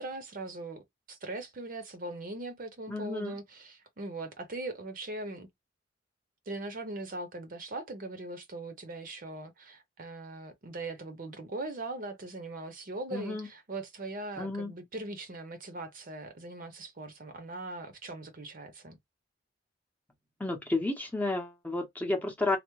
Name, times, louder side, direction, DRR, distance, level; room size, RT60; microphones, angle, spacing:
voice 1, 0.0-5.5 6.5-19.0, right 2 dB, 45° right, 0.7 m, -40 dB
voice 2, 2.9-3.4 13.1-13.5 14.4-14.7 20.4-22.6, left 2 dB, 10° left, 0.7 m, -31 dB
3.3 x 2.1 x 3.0 m
head